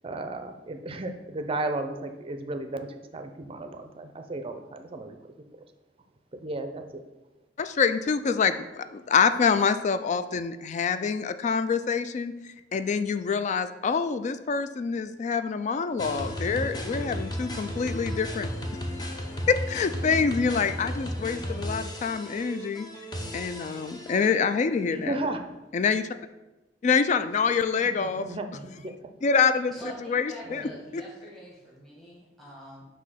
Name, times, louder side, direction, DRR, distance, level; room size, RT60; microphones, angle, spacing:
voice 1, 0.0-5.2 6.4-7.0 24.9-25.4 27.8-29.0 30.4-30.8, right 2 dB, 30° right, 6 dB, 0.5 m, -34 dB
voice 2, 7.6-12.4 12.7-18.5 19.5-22.9 23.3-25.1 25.7-26.1 26.8-28.3 29.2-29.8 30.0-31.0, left 5 dB, 40° left, 11 dB, 0.3 m, -26 dB
sound 1, 16.0-24.3, equal, 25° left, 0.7 m, -34 dB
voice 3, 29.7-32.9, equal, ahead, -5 dB, 1.2 m, -45 dB
6.2 x 2.7 x 5.6 m, 1.0 s
head